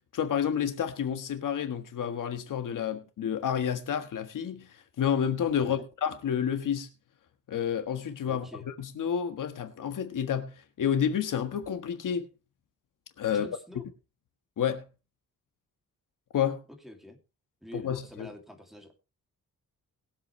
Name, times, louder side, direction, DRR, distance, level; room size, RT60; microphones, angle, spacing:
voice 1, 0.1-6.9 7.5-12.3 13.2-13.5 14.6-14.8 16.3-16.6 17.7-18.3, left 8 dB, 90° left, 1.6 m, -30 dB
voice 2, 5.5-5.9 8.2-8.6 13.3-13.8 16.8-17.2 17.6-18.9, equal, ahead, 2.7 m, -46 dB
21.5 x 8.1 x 3.3 m
wide cardioid pair, 155°, 31 cm